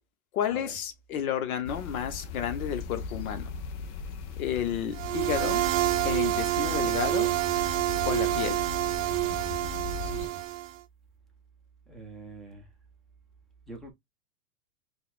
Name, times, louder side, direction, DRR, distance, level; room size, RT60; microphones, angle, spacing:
voice 1, 0.3-3.5 4.4-5.6 6.0-7.4 8.1-8.6, left 9 dB, 75° left, 1.1 m, -31 dB
sound 1, 1.7-10.3, left 4 dB, 55° left, 0.6 m, -38 dB
sound 2, 4.9-10.8, right 16 dB, 65° right, 0.5 m, -28 dB
voice 2, 9.9-10.5 11.9-12.7 13.7-13.9, right 2 dB, ahead, 0.5 m, -45 dB
3.9 x 2.4 x 2.3 m
supercardioid pair, 145°, 43 cm